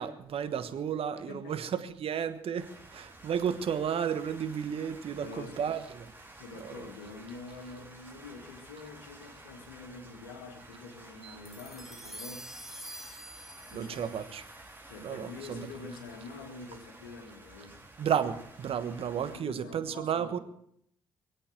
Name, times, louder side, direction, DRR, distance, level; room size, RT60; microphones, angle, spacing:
voice 1, 0.0-6.1 6.6-6.8 11.2-11.3 13.7-14.4 15.0-15.7 18.0-20.4, right 8 dB, 60° right, 1.3 m, -33 dB
voice 2, 1.1-1.7 5.2-5.6 6.4-12.5 13.7-14.3 14.9-17.8 19.3-20.4, left 4 dB, 85° left, 2.1 m, -46 dB
sound 1, 2.6-19.4, right 2 dB, 20° right, 4.4 m, -52 dB
sound 2, 11.4-16.0, right 1 dB, 5° right, 2.8 m, -48 dB
22.0 x 8.6 x 7.5 m
hypercardioid pair, 45°, 11 cm